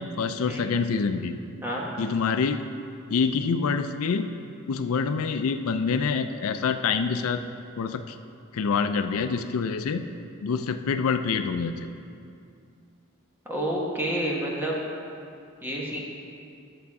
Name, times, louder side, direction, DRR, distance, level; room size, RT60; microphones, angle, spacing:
voice 1, 0.0-1.3 2.0-2.6 3.1-4.3 4.7-7.4 7.8-8.2 8.5-10.0 10.4-11.7, left 5 dB, 75° left, 9 dB, 0.4 m, -26 dB
voice 2, 13.4-14.8 15.6-16.0, right 1 dB, 10° right, -4 dB, 1.4 m, -29 dB
11.0 x 6.9 x 4.7 m, 2.5 s
head